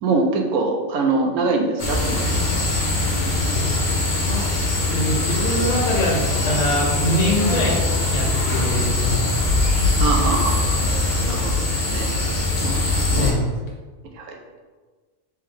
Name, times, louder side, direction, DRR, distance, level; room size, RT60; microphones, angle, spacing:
voice 1, 0.0-2.6 10.0-10.8 11.3-12.1 12.6-13.3 14.1-14.4, right 3 dB, 85° right, 2 dB, 1.1 m, -24 dB
sound 1, 1.8-13.3, left 2 dB, 40° left, 0.8 m, -21 dB
voice 2, 4.9-6.2 6.5-9.2 13.1-13.5, left 1 dB, 60° left, -2 dB, 1.3 m, -23 dB
3.3 x 3.2 x 3.4 m, 1.4 s
omnidirectional pair, 1.5 m